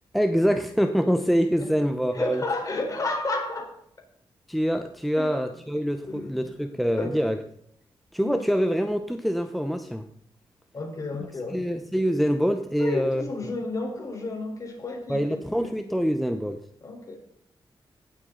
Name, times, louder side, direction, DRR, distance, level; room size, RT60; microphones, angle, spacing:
voice 1, 0.1-2.4 4.5-7.4 8.1-10.1 11.5-13.2 15.1-16.6, equal, ahead, 7 dB, 0.8 m, -25 dB
voice 2, 2.1-3.7 5.2-5.4 6.1-6.5 7.0-7.2 8.2-8.4 10.7-11.8 12.8-15.8 16.8-17.2, left 2 dB, 40° left, 1 dB, 4.2 m, -32 dB
18.0 x 8.2 x 3.9 m, 0.71 s
wide cardioid pair, 115°, 9 cm